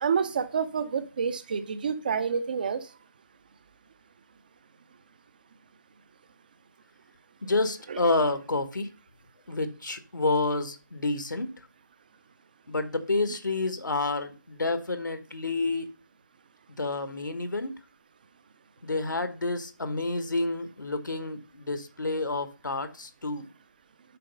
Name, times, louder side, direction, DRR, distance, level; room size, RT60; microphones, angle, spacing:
voice 1, 0.0-2.8, right 6 dB, 25° right, 0.6 m, -28 dB
voice 2, 7.4-8.9 9.5-11.5 12.7-15.9 16.8-17.8 18.8-23.5, left 2 dB, 70° left, 1.4 m, -29 dB
7.6 x 5.1 x 5.2 m
figure-of-eight pair, 160°, 10 cm